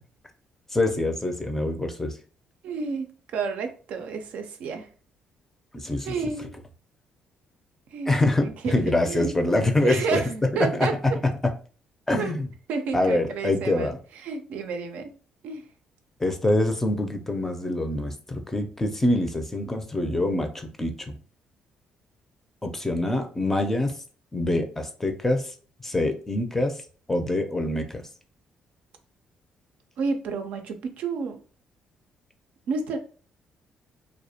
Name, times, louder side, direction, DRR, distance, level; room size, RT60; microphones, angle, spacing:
voice 1, 0.7-2.1 5.7-6.1 8.1-10.2 10.6-10.9 11.4-11.5 12.1-12.5 12.9-13.9 16.2-21.2 22.6-23.9 24.3-25.5 25.8-26.7 27.1-28.0, left 2 dB, 15° left, 0.4 m, -25 dB
voice 2, 2.6-4.9 6.0-6.5 7.9-9.3 9.8-10.9 12.2-12.3 12.7-13.9 14.2-15.1 15.4-15.6 30.0-31.4 32.7-33.0, right 5 dB, 75° right, 0.4 m, -30 dB
2.3 x 2.1 x 2.7 m
cardioid pair, 90°, 2 cm